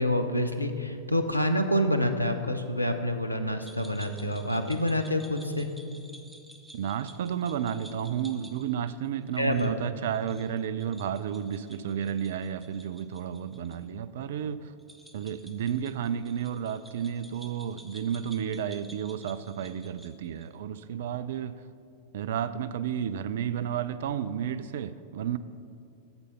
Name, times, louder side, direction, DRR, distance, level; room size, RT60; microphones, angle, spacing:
voice 1, 0.0-5.7 9.4-9.7, left 1 dB, 85° left, 7 dB, 0.6 m, -27 dB
sound 1, 3.6-13.8 14.0-14.1 14.8-20.5, right 1 dB, 5° right, 0.8 m, -52 dB
voice 2, 6.7-14.7 15.1-21.5 22.1-25.4, right 9 dB, 55° right, 14 dB, 0.3 m, -32 dB
8.0 x 6.7 x 5.6 m, 2.5 s
figure-of-eight pair, 90°, 0 cm